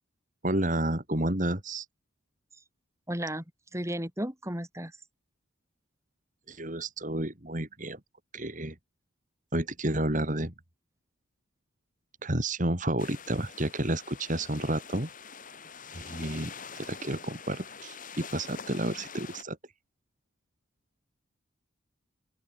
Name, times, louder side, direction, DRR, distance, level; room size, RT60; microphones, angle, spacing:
voice 1, 0.4-1.9 6.5-8.0 8.3-8.8 9.5-10.5 12.2-15.1 15.9-19.6, right 1 dB, 40° right, 4.2 m, -31 dB
voice 2, 3.1-3.4 3.7-5.0, right 1 dB, 15° right, 5.0 m, -34 dB
sound 1, 13.0-19.4, left 6 dB, 40° left, 4.1 m, -45 dB
open air
head